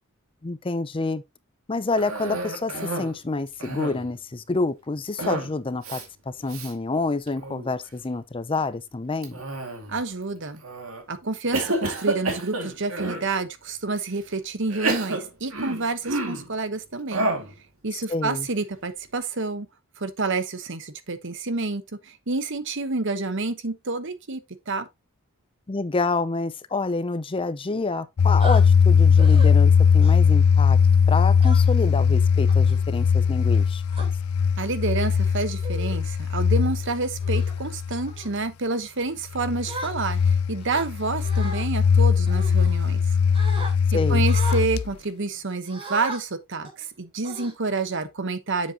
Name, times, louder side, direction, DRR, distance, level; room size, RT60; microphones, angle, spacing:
voice 1, 0.4-1.2 1.7-9.4 18.1-18.5 25.7-30.8 31.1-33.8 43.9-44.3, left 3 dB, 25° left, 0.5 m, -28 dB
Cough, 2.0-3.2 3.5-4.1 5.2-5.5 5.8-6.0 6.5-6.7 7.3-7.7 9.2-10.0 10.6-11.0 11.5-13.3 14.0-14.1 14.7-16.5 17.1-17.5, right 2 dB, 75° right, 2.2 m, -29 dB
voice 2, 9.9-10.6 11.1-17.3 17.8-19.7 20.0-24.4 24.7-24.9 34.6-43.0 43.9-48.7, right 3 dB, 60° right, 1.1 m, -28 dB
sound 1, 28.2-38.2 39.3-44.9, left 6 dB, 80° left, 0.4 m, -20 dB
sound 2, 28.4-28.6 29.2-29.5 30.0-30.3 31.4-31.9 32.5-32.8 33.5-34.1 34.9-35.1 35.6-36.0 36.5-36.7 37.2-37.5 38.1-38.3 39.6-40.3 40.7-41.6 42.3-43.0 43.3-43.7 44.2-44.6 45.7-46.2 46.6-46.8 47.2-47.9, right 2 dB, 25° right, 3.2 m, -37 dB
7.7 x 7.3 x 2.9 m
head